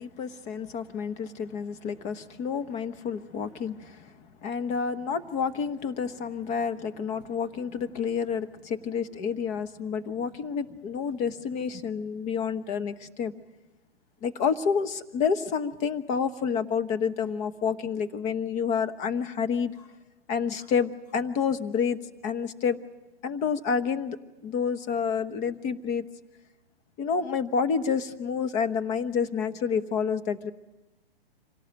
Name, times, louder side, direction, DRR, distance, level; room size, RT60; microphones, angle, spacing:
voice 1, 0.0-4.1 4.4-13.3 14.2-19.9 20.3-22.8 23.2-24.2 24.4-26.0 27.0-30.5, left 6 dB, 25° left, 10 dB, 1.1 m, -29 dB
26.5 x 17.5 x 8.9 m, 1.1 s
hypercardioid pair, 125°, 30 cm